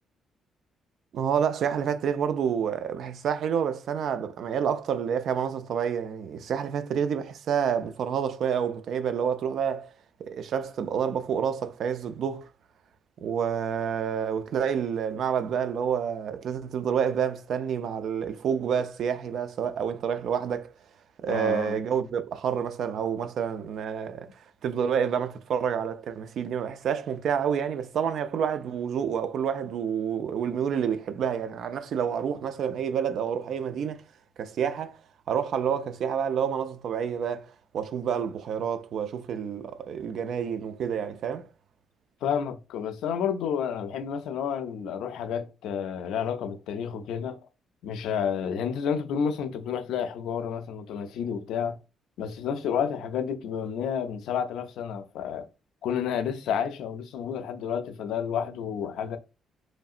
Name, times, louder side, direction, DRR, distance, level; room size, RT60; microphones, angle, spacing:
voice 1, 1.1-9.9 10.2-12.5 13.2-20.7 21.2-24.3 24.6-34.0 34.4-35.0 35.3-37.5 37.7-41.5, right 7 dB, 70° right, 0.4 m, -28 dB
voice 2, 21.3-21.8 42.2-47.4 47.8-51.8 52.2-55.5 55.8-59.2, left 7 dB, 85° left, 0.4 m, -30 dB
3.1 x 2.7 x 2.4 m
cardioid pair, 90°, 0 cm